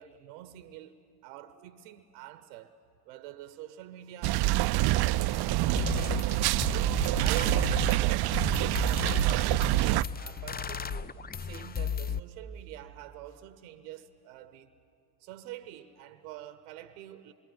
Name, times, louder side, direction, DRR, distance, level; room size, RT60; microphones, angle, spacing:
voice 1, 0.0-2.8 3.0-6.2 6.7-14.7 15.2-17.3, right 13 dB, 85° right, 1.0 m, -46 dB
sound 1, 4.2-10.0, right 17 dB, 55° right, 0.6 m, -26 dB
sound 2, 5.3-5.4 5.8-12.2, left 7 dB, 20° left, 0.6 m, -35 dB
26.5 x 23.0 x 9.6 m
hypercardioid pair, 65°, 48 cm